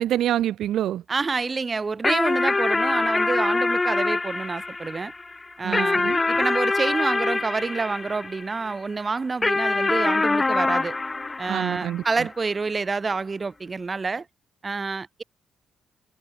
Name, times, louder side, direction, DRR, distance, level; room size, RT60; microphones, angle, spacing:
voice 1, 0.0-1.0 5.6-6.2 11.5-12.3, right 12 dB, 75° right, 0.7 m, -26 dB
voice 2, 1.1-5.1 5.6-6.0 6.3-10.9 11.4-14.3 14.6-15.2, right 4 dB, 30° right, 0.3 m, -28 dB
Arab flute, 2.0-8.7 9.4-12.2, left 3 dB, 20° left, 1.1 m, -24 dB
cardioid pair, 90°, 0 cm